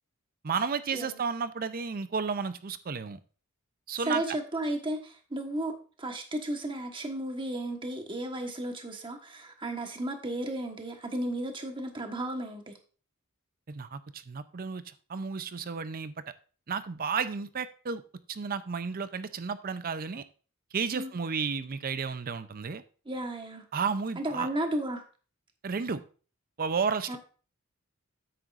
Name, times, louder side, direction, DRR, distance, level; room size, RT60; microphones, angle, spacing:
voice 1, 0.4-3.2 3.9-4.4 13.7-16.1 16.7-18.0 18.3-20.2 20.7-22.8 23.7-24.5 25.6-26.0 26.6-27.2, right 5 dB, 40° right, 13 dB, 0.5 m, -32 dB
voice 2, 4.1-5.7 6.0-12.7 20.9-21.1 23.1-23.6 24.2-25.0 27.1-27.2, right 1 dB, 25° right, 4 dB, 1.3 m, -34 dB
9.2 x 8.9 x 2.5 m, 0.38 s
head